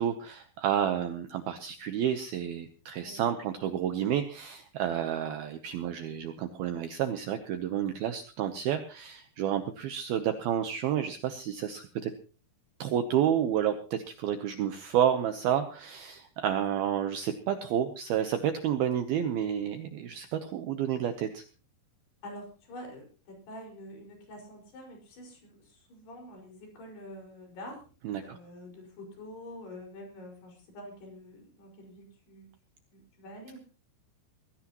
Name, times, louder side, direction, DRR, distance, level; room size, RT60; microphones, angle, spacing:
voice 1, 0.0-12.1 12.8-21.4 28.0-28.4, right 9 dB, 75° right, 8 dB, 2.3 m, -30 dB
voice 2, 22.2-27.8 28.2-32.5 32.9-33.6, left 1 dB, 60° left, 2 dB, 7.3 m, -46 dB
22.0 x 15.5 x 3.0 m, 0.36 s
omnidirectional pair, 5.4 m